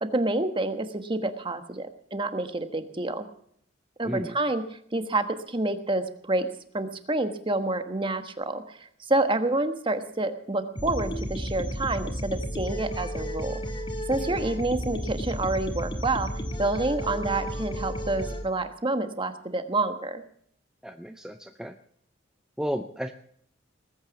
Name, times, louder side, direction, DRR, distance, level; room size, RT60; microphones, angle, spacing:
voice 1, 0.0-3.3 4.0-6.5 6.7-13.5 14.1-20.2, right 2 dB, 25° right, 8 dB, 1.3 m, -28 dB
voice 2, 4.0-4.4 14.3-14.4 20.8-21.8 22.6-23.1, equal, 5° right, 6 dB, 0.6 m, -33 dB
sound 1, 10.8-18.4, equal, 25° left, 1.8 m, -33 dB
19.5 x 9.0 x 7.0 m, 0.63 s
head